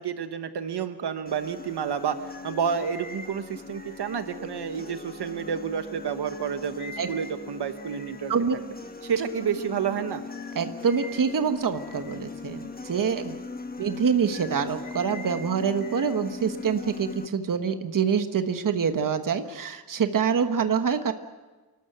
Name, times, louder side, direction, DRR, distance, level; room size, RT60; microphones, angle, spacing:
voice 1, 0.0-2.2 2.4-8.3 9.0-10.2 13.2-13.4, right 7 dB, 80° right, 9 dB, 1.2 m, -30 dB
sound 1, 1.3-17.3, left 4 dB, 20° left, 1.3 m, -40 dB
voice 2, 10.5-13.3 13.8-21.1, right 6 dB, 55° right, 8 dB, 1.3 m, -26 dB
28.0 x 12.5 x 9.1 m, 1.3 s
wide cardioid pair, 145°, 40 cm